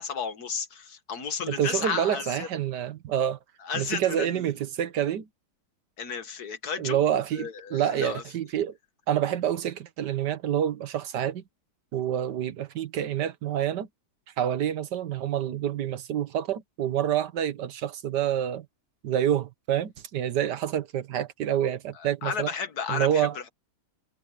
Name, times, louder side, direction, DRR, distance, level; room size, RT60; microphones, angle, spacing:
voice 1, 0.0-2.5 3.6-4.5 6.0-7.0 7.3-8.2 21.9-23.5, left 6 dB, 65° left, 2.0 m, -33 dB
voice 2, 1.5-3.4 3.7-5.3 6.8-8.7 9.1-11.4 11.9-13.9 14.4-18.6 19.0-22.5 22.9-23.3, right 10 dB, 85° right, 1.7 m, -27 dB
omnidirectional pair, 1.8 m